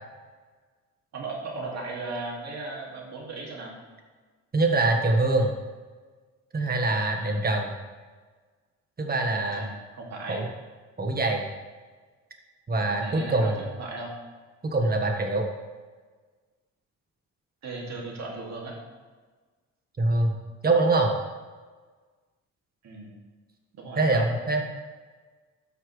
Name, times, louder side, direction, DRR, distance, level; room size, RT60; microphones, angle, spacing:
voice 1, 1.1-3.7 7.2-7.4 9.3-10.4 12.9-14.2 17.6-18.8 22.8-23.1 23.7-24.2, right 3 dB, 60° right, -2 dB, 2.5 m, -37 dB
voice 2, 4.5-5.5 6.5-7.7 9.0-9.6 10.3-10.4 11.0-11.4 12.7-13.6 14.6-15.4 20.0-20.3 20.6-21.1 24.0-24.8, right 2 dB, 30° right, 3 dB, 1.5 m, -24 dB
13.0 x 5.8 x 3.3 m, 1.4 s
cardioid pair, 90°, 30 cm